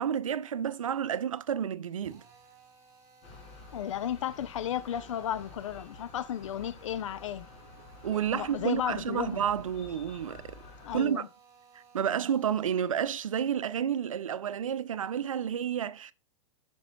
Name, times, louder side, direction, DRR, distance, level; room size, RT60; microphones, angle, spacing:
voice 1, 0.0-2.2 8.0-10.4 10.9-11.3 11.7-16.1, right 9 dB, 80° right, 0.6 m, -30 dB
Drill, 2.0-13.0, right 5 dB, 20° right, 3.5 m, -59 dB
sound 1, 3.2-11.1, left 3 dB, 40° left, 3.0 m, -50 dB
voice 2, 3.7-7.5 8.3-9.4 10.8-11.3, left 10 dB, 70° left, 0.6 m, -34 dB
9.8 x 6.1 x 2.2 m
hypercardioid pair, 105°, 17 cm